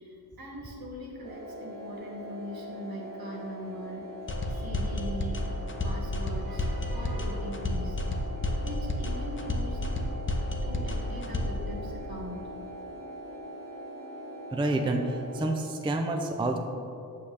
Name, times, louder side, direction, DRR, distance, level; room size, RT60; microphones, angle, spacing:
voice 1, 0.0-4.0 4.4-5.5 5.8-8.0 8.6-9.9 10.6-12.4, equal, 65° right, -2 dB, 1.5 m, -40 dB
sound 1, 1.2-15.6, right 1 dB, 40° right, 1.8 m, -42 dB
sound 2, 4.3-11.7, left 1 dB, 30° left, 0.6 m, -31 dB
voice 2, 14.5-16.6, right 2 dB, 15° right, 4 dB, 0.4 m, -28 dB
8.3 x 7.1 x 3.3 m, 2.7 s
wide cardioid pair, 165°, 39 cm